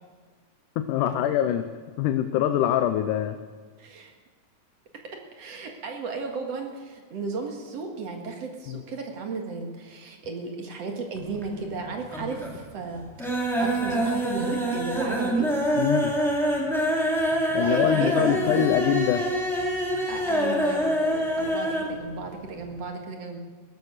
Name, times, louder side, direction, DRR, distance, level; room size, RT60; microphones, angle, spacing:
voice 1, 0.8-1.7 2.0-3.4 8.7-8.8 15.7-16.1 17.5-19.3, left 10 dB, 80° left, 9 dB, 2.2 m, -24 dB
voice 2, 3.8-4.1 5.3-15.5 17.6-18.7 20.1-23.4, right 4 dB, 55° right, 3 dB, 2.6 m, -34 dB
sound 1, 11.2-11.8 12.1-12.6 12.9-21.9 22.2-22.3 22.6-22.7, equal, ahead, 2.6 m, -26 dB
16.5 x 13.5 x 6.6 m, 1.5 s
omnidirectional pair, 3.7 m